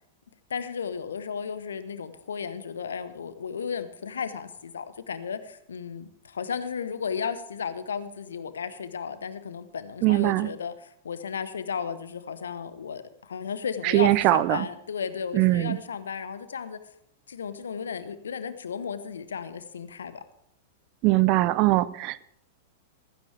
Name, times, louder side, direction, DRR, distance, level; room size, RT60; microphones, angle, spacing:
voice 1, 0.5-10.7 11.0-16.8 17.3-20.2, left 6 dB, 70° left, 12 dB, 1.1 m, -34 dB
voice 2, 10.0-10.5 13.8-14.7 15.3-15.8 21.0-22.2, right 18 dB, 40° right, 18 dB, 0.6 m, -21 dB
15.5 x 15.5 x 3.5 m, 0.72 s
figure-of-eight pair, 95°, 0 cm